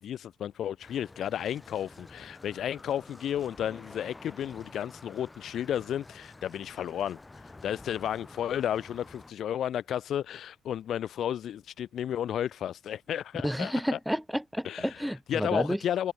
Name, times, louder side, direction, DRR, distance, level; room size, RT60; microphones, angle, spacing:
voice 1, 0.0-7.2 7.6-14.0 14.6-14.9 15.3-16.1, left 10 dB, 70° left, 1.0 m, -32 dB
sound 1, 0.8-9.3, left 2 dB, 20° left, 6.4 m, -50 dB
voice 2, 13.4-15.8, equal, ahead, 3.5 m, -30 dB
cardioid pair, 90°, 0 cm